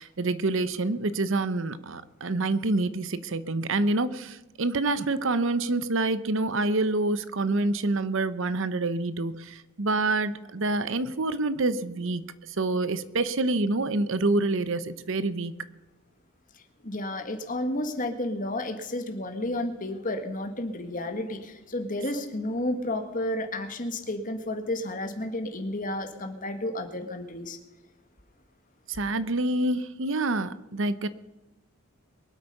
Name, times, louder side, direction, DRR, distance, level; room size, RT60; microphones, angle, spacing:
voice 1, 0.0-12.3 12.6-15.5 28.9-31.1, right 2 dB, 60° right, 14 dB, 0.8 m, -27 dB
voice 2, 16.8-27.6, left 1 dB, 40° left, 6 dB, 1.7 m, -31 dB
23.0 x 8.4 x 5.5 m, 1.1 s
head